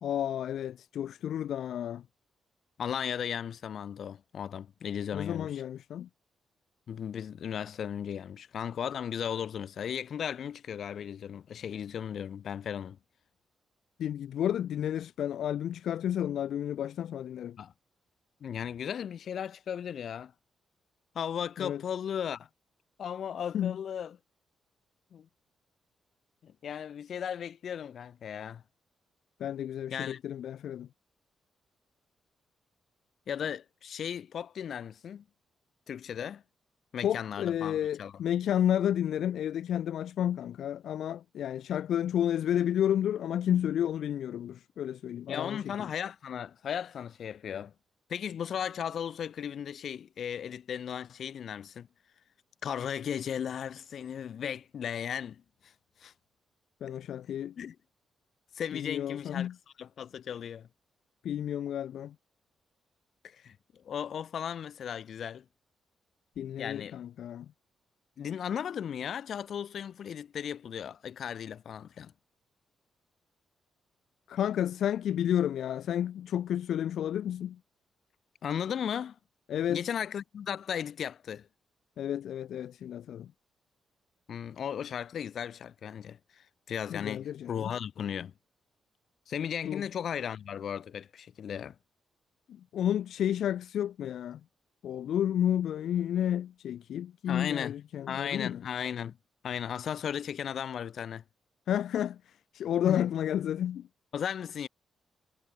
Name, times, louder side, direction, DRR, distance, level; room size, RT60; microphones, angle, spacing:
voice 1, 0.0-2.0 5.1-6.1 14.0-17.6 21.6-21.8 23.5-23.8 29.4-30.9 37.0-45.9 56.8-57.5 58.7-59.6 61.2-62.1 66.4-67.5 74.3-77.6 79.5-79.8 82.0-83.3 86.9-87.7 89.6-89.8 92.5-94.4 94.8-98.6 101.7-103.9, left 10 dB, 80° left, 0.8 m, -31 dB
voice 2, 2.8-5.6 6.9-13.0 17.6-17.7 18.4-20.3 21.1-22.5 23.0-24.2 25.1-25.3 26.4-28.6 29.9-30.2 33.3-35.2 35.9-36.4 36.9-38.1 45.3-47.7 48.1-51.9 52.6-55.7 56.0-56.1 57.6-57.7 58.5-59.5 59.8-60.7 63.2-65.4 66.6-67.0 68.2-72.1 78.4-79.2 79.7-81.5 84.3-88.3 89.3-91.7 97.3-97.7 98.1-99.2 99.4-101.2 102.8-103.1 104.1-104.7, left 8 dB, 60° left, 2.6 m, -36 dB
cardioid pair, 135°, 0 cm